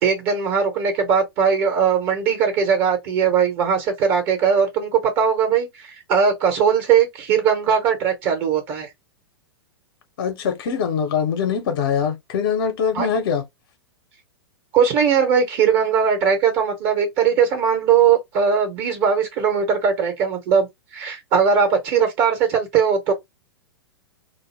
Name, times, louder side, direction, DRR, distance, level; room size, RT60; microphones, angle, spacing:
voice 1, 0.0-8.9 12.9-13.1 14.7-20.7 20.9-23.1, right 7 dB, 45° right, 1.1 m, -19 dB
voice 2, 10.2-13.4, left 6 dB, 60° left, 0.7 m, -23 dB
2.2 x 2.0 x 3.2 m
hypercardioid pair, 110°, 13 cm